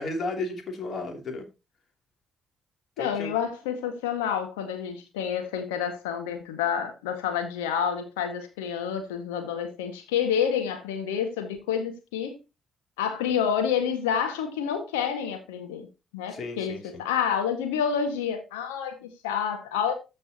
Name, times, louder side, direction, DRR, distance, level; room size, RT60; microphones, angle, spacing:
voice 1, 0.0-1.5 3.0-3.3 16.3-16.8, left 2 dB, 50° left, 3.0 m, -33 dB
voice 2, 3.0-12.4 13.0-15.9 16.1-19.9, left 8 dB, 80° left, 1.8 m, -28 dB
14.0 x 5.4 x 3.0 m
figure-of-eight pair, 45°, 0 cm